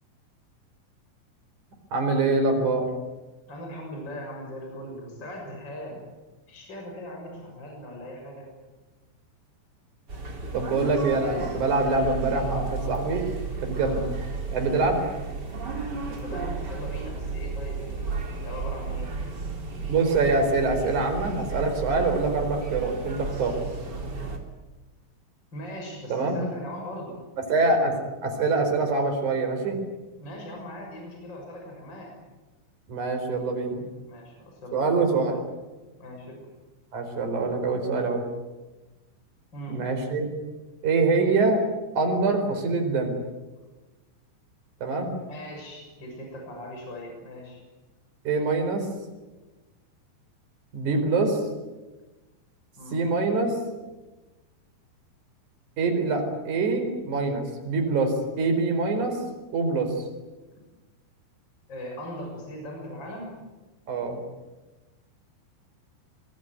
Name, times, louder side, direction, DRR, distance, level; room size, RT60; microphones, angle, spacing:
voice 1, 1.9-2.9 10.5-13.3 13.6-14.0 14.5-15.0 19.9-23.6 26.1-26.4 27.4-29.8 32.9-33.8 34.7-35.4 36.9-38.2 39.7-40.3 40.8-41.6 42.0-43.2 44.8-45.1 48.3-48.9 50.7-51.4 52.9-53.5 55.8-59.2 59.5-59.9 63.9-64.2, right 3 dB, 40° right, 4 dB, 5.5 m, -24 dB
voice 2, 3.5-6.0 6.5-8.5 16.1-19.1 20.3-20.6 25.5-27.2 30.2-32.2 34.1-34.9 36.0-36.4 39.5-39.8 45.3-47.6 52.8-53.0 56.2-56.3 61.7-63.4, equal, 25° left, 1 dB, 6.9 m, -39 dB
sound 1, 10.1-24.4, right 4 dB, 25° right, 3.1 m, -33 dB
26.0 x 20.5 x 9.4 m, 1.2 s
omnidirectional pair, 5.3 m